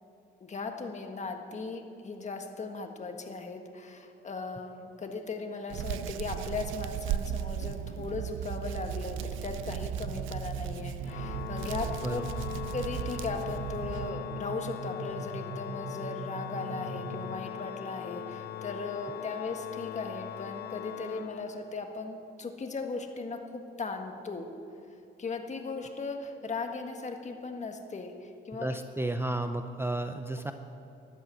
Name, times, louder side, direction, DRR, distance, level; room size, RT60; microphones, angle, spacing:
voice 1, 0.4-12.2 12.7-24.5 25.2-28.7, left 3 dB, 35° left, 5 dB, 1.6 m, -37 dB
Hands, 5.7-14.1, right 10 dB, 85° right, 0.5 m, -36 dB
sound 1, 10.0-17.6, right 4 dB, 45° right, 1.1 m, -42 dB
Organ, 11.0-21.9, left 11 dB, 55° left, 0.5 m, -41 dB
voice 2, 28.6-30.5, right 2 dB, 10° right, 8 dB, 0.6 m, -32 dB
12.5 x 11.0 x 7.8 m, 2.8 s
cardioid pair, 90°, 20 cm